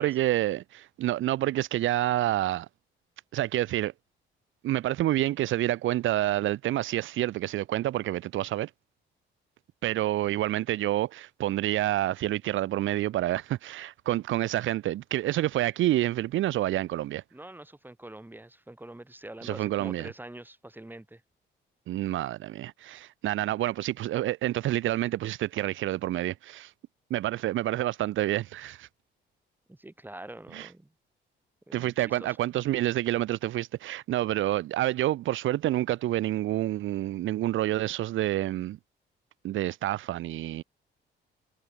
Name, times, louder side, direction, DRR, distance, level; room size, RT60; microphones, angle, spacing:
voice 1, 0.0-2.7 3.3-3.9 4.6-8.7 9.8-17.2 19.4-20.1 21.9-26.7 27.1-28.9 30.5-30.7 31.7-38.8 39.4-40.6, right 14 dB, 80° right, 1.0 m, -28 dB
voice 2, 17.3-21.2 29.7-30.9 31.7-32.4, right 1 dB, 10° right, 4.6 m, -45 dB
cardioid pair, 90°, 20 cm